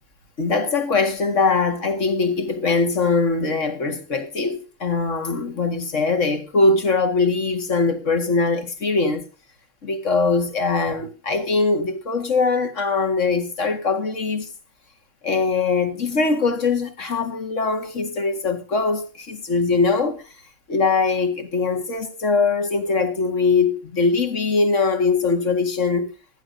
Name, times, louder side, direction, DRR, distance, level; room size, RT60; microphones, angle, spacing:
voice 1, 0.4-9.2 9.8-14.5 15.2-20.2 20.7-26.1, left 4 dB, 35° left, 2.1 m, -21 dB
19.0 x 14.0 x 2.7 m
omnidirectional pair, 2.4 m